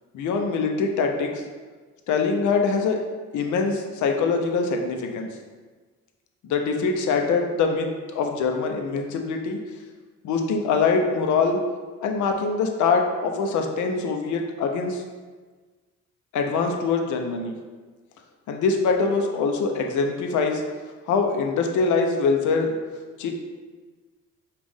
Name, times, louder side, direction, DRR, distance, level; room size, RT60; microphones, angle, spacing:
voice 1, 0.1-1.4 2.1-3.0 3.3-5.3 6.5-9.6 10.2-11.6 12.0-15.0 16.3-17.5 18.5-20.6 21.1-22.7 23.2-23.3, left 4 dB, 75° left, 3 dB, 0.6 m, -23 dB
5.3 x 2.4 x 3.5 m, 1.4 s
cardioid pair, 90°, 30 cm